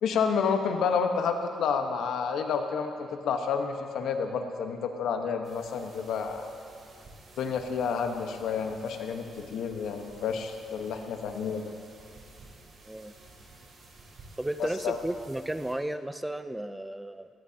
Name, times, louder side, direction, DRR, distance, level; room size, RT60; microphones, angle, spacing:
voice 1, 0.0-6.5 7.4-11.7 14.6-15.0, left 6 dB, 75° left, 5 dB, 1.2 m, -30 dB
sound 1, 5.4-15.7, right 2 dB, 50° right, 4.0 m, -53 dB
voice 2, 14.4-17.3, right 1 dB, 10° right, 11 dB, 0.5 m, -33 dB
19.5 x 18.5 x 2.9 m, 2.5 s
cardioid pair, 90°, 0 cm